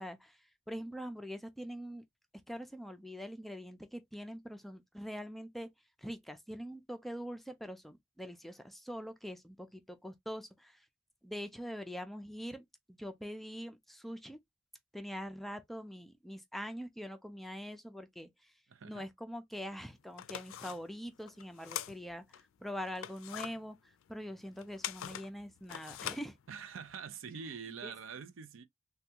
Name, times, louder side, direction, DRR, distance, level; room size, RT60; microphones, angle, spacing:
voice 1, 0.0-2.0 2.5-5.7 6.0-10.9 11.2-12.6 13.0-14.4 14.9-18.5 18.8-26.4 27.8-27.9, equal, ahead, 0.3 m, -43 dB
voice 2, 18.7-19.0 26.5-28.7, right 6 dB, 75° right, 0.5 m, -45 dB
sound 1, 19.5-19.6 20.1-22.4 22.8-27.0, left 11 dB, 80° left, 0.3 m, -43 dB
3.4 x 2.3 x 2.7 m
head